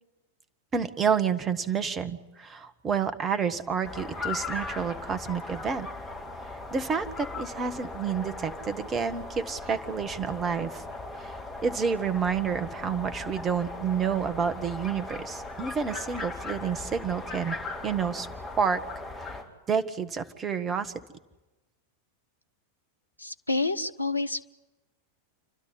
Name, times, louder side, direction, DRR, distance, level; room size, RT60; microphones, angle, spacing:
voice 1, 0.7-5.9 6.7-10.8 11.2-17.6 17.8-18.3 18.6-18.8 19.2-19.4 19.7-20.9, right 6 dB, 20° right, 10 dB, 1.3 m, -29 dB
sound 1, 3.8-19.4, left 2 dB, 20° left, 4.9 m, -38 dB
voice 2, 23.2-24.4, left 3 dB, 85° left, 9 dB, 0.8 m, -28 dB
29.0 x 12.5 x 9.7 m, 1.1 s
figure-of-eight pair, 90°, 0 cm